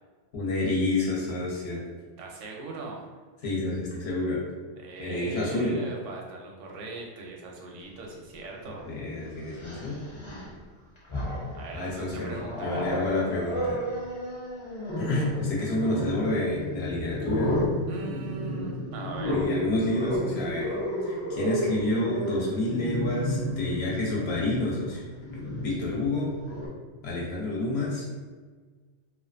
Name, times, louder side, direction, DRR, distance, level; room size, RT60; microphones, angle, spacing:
voice 1, 0.3-1.8 3.4-4.4 5.0-5.8 8.8-10.0 11.7-12.3 12.6-13.8 15.0-17.5 19.3-20.7 21.0-25.0 25.6-26.3 27.0-28.1, left 2 dB, 65° left, -5 dB, 0.9 m, -29 dB
voice 2, 2.2-3.0 4.8-8.8 11.5-12.9 17.9-19.4, right 3 dB, 85° right, 0 dB, 0.9 m, -39 dB
Growling, 8.4-8.5 9.5-10.5 11.0-11.6 12.1-26.7, equal, 45° left, 0.3 m, -32 dB
2.5 x 2.3 x 2.4 m, 1.5 s
omnidirectional pair, 1.2 m